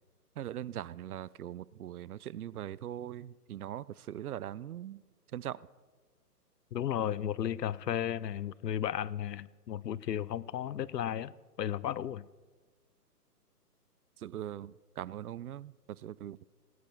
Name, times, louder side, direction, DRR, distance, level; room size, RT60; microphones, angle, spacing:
voice 1, 0.4-5.0 5.3-5.6 14.2-16.4, right 11 dB, 65° right, 0.5 m, -41 dB
voice 2, 6.7-11.3 11.6-12.3, left 10 dB, 80° left, 0.6 m, -34 dB
18.5 x 9.4 x 4.5 m
hypercardioid pair, 145°, 49 cm